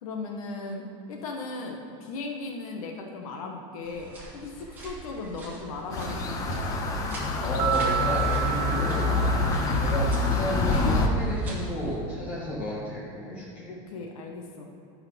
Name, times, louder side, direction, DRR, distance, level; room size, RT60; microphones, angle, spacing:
voice 1, 0.0-6.6 8.6-8.9 13.7-14.7, left 3 dB, 70° left, 2 dB, 1.3 m, -37 dB
sound 1, 3.8-12.0, right 1 dB, 10° right, 1.7 m, -43 dB
sound 2, 5.9-11.1, left 3 dB, 20° left, 0.6 m, -26 dB
voice 2, 7.4-9.0 9.8-13.7, equal, 40° left, -7 dB, 1.9 m, -32 dB
sound 3, 7.6-10.4, right 10 dB, 70° right, 0.7 m, -31 dB
12.0 x 4.9 x 5.8 m, 2.7 s
supercardioid pair, 175°, 19 cm